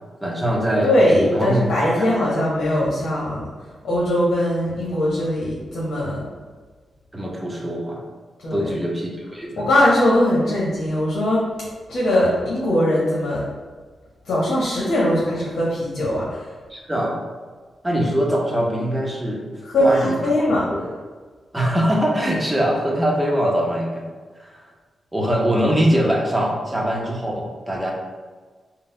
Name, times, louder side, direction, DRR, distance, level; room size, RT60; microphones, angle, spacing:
voice 1, 0.2-1.7 2.0-2.2 7.1-8.0 8.5-9.7 16.7-17.2 17.8-19.5 19.8-20.9 21.5-24.1 24.4-24.7 25.1-27.9, equal, 15° right, -1 dB, 0.7 m, -22 dB
voice 2, 0.8-3.5 3.8-6.2 8.4-8.7 9.6-11.4 11.9-13.4 14.3-16.4 19.7-20.7, left 1 dB, 80° left, -6 dB, 1.0 m, -20 dB
3.8 x 2.1 x 4.1 m, 1.4 s
cardioid pair, 95°, 0 cm